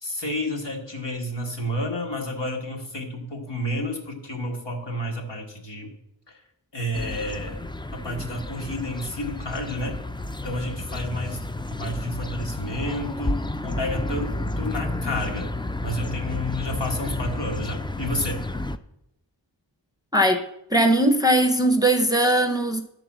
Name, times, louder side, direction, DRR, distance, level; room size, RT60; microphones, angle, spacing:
voice 1, 0.0-5.9 6.3-6.4 6.7-7.6 7.9-10.0 10.4-11.4 11.7-15.5 15.8-18.4, left 1 dB, 65° left, 1.8 m, -30 dB
sound 1, 6.9-18.8, left 2 dB, 10° left, 0.3 m, -31 dB
voice 2, 20.1-20.4 20.7-22.8, right 1 dB, 10° right, 0.7 m, -19 dB
11.0 x 3.9 x 7.3 m
wide cardioid pair, 45°, 45 cm